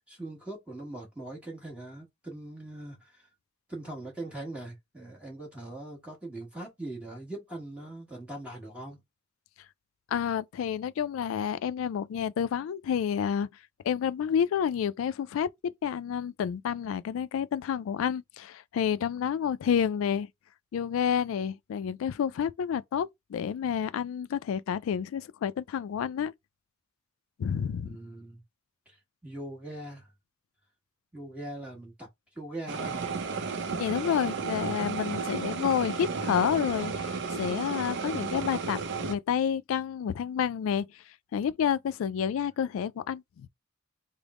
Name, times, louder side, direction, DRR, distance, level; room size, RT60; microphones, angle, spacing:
voice 1, 0.1-3.3 3.7-9.0 27.8-28.4 28.9-30.1 31.1-32.1 32.3-33.1 34.2-34.6 35.1-35.7, right 1 dB, 5° right, 1.2 m, -41 dB
voice 2, 10.1-13.5 13.8-15.5 15.8-20.3 20.7-26.3 27.4-28.0 33.8-40.9 41.3-43.5, left 8 dB, 80° left, 0.3 m, -29 dB
sound 1, 32.7-39.1, right 4 dB, 60° right, 0.5 m, -33 dB
3.4 x 2.0 x 3.5 m
head